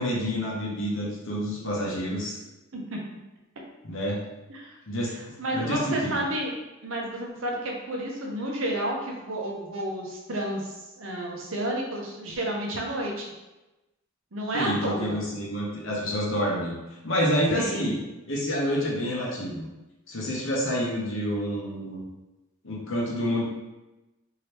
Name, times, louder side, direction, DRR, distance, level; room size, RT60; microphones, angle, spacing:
voice 1, 0.0-2.4 3.8-4.2 4.9-5.1 5.5-6.2 14.5-16.7 17.0-18.0 18.3-19.7 20.1-22.0 22.6-23.4, equal, 60° left, -3 dB, 0.9 m, -28 dB
voice 2, 5.4-6.5 6.8-13.3 14.3-15.2 17.5-17.9, right 1 dB, 65° right, -1 dB, 0.7 m, -31 dB
2.8 x 2.8 x 3.2 m, 1.0 s
head